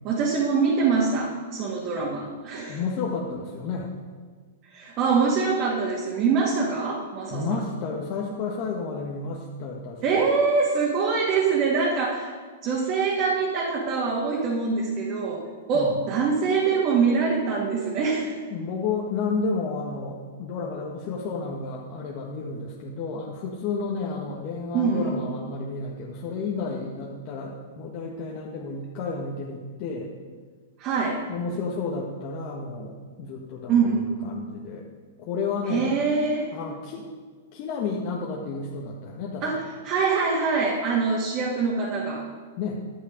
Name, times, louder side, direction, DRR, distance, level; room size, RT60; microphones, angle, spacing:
voice 1, 0.0-2.8 4.7-7.6 10.0-12.3 12.6-18.4 24.7-25.2 30.8-31.2 33.7-34.1 35.7-36.5 39.4-42.3, right 5 dB, 40° right, -4 dB, 2.2 m, -24 dB
voice 2, 2.7-4.0 7.3-10.0 15.7-16.0 18.5-30.1 31.3-34.8 35.2-35.9 36.5-37.1 37.5-39.5 42.6-42.8, left 4 dB, 45° left, -3 dB, 1.6 m, -31 dB
11.5 x 8.7 x 5.2 m, 1.5 s
hypercardioid pair, 125°, 0 cm